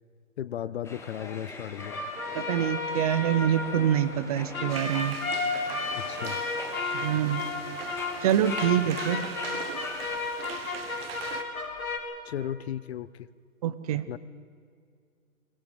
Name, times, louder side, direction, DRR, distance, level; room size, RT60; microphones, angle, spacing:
voice 1, 0.4-2.1 6.0-6.4 12.2-13.3 14.1-14.2, left 10 dB, 50° left, 18 dB, 0.7 m, -35 dB
sound 1, 0.8-10.2, left 3 dB, 5° left, 1.4 m, -43 dB
sound 2, 1.8-12.0, left 3 dB, 90° left, 4.0 m, -33 dB
voice 2, 2.3-5.2 6.9-7.4 8.2-9.2 13.6-14.0, right 10 dB, 25° right, 14 dB, 0.7 m, -25 dB
sound 3, 4.7-11.4, right 8 dB, 45° right, 1.5 m, -41 dB
22.0 x 17.0 x 7.9 m, 2.2 s
hypercardioid pair, 145°, 41 cm